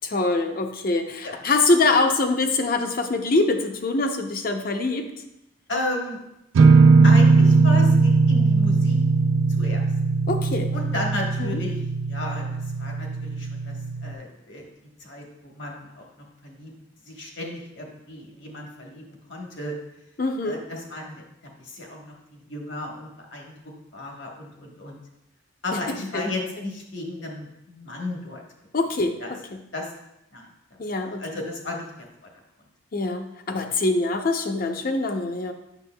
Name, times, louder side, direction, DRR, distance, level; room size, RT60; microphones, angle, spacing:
voice 1, 0.0-5.1 10.3-10.7 11.4-11.6 20.2-20.6 25.7-25.8 26.1-26.3 28.7-29.1 30.8-31.3 32.9-35.5, left 3 dB, 45° left, 5 dB, 0.6 m, -24 dB
voice 2, 5.7-6.2 7.0-9.0 9.6-9.8 10.7-11.8 12.1-13.8 14.0-14.7 15.0-16.7 17.0-19.7 20.4-21.2 21.6-25.0 25.6-28.4 29.2-29.3 29.7-29.9 30.3-30.5 31.2-32.1, left 1 dB, 65° left, 0 dB, 1.2 m, -34 dB
sound 1, 6.5-14.1, right 4 dB, 85° right, 0.4 m, -19 dB
8.1 x 6.2 x 2.2 m, 0.86 s
head